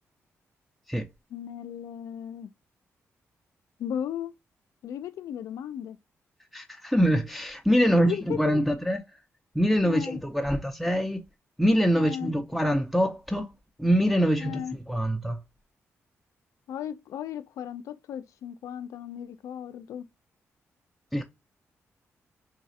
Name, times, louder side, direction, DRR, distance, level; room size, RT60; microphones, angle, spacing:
voice 1, 1.3-2.5 3.8-4.3 4.8-6.0 8.0-8.6 9.8-10.2 11.9-12.3 14.4-14.7 16.7-20.1, left 9 dB, 85° left, 0.4 m, -35 dB
voice 2, 6.5-9.0 9.5-11.2 11.6-13.5 13.8-15.4 21.1-21.2, equal, ahead, 0.5 m, -24 dB
3.8 x 2.4 x 2.7 m
cardioid pair, 80°, 5 cm